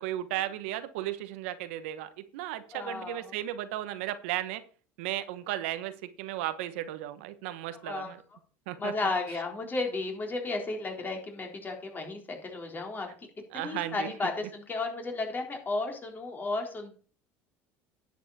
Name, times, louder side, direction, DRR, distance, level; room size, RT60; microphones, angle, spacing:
voice 1, 0.0-4.6 5.0-5.9 6.2-8.2 8.7-8.9 13.5-14.1, right 13 dB, 80° right, 11 dB, 1.1 m, -35 dB
voice 2, 2.7-3.3 7.8-8.1 8.8-13.1 13.5-17.0, left 3 dB, 30° left, 2 dB, 3.8 m, -33 dB
10.5 x 7.6 x 4.3 m, 0.40 s
supercardioid pair, 90°, 7 cm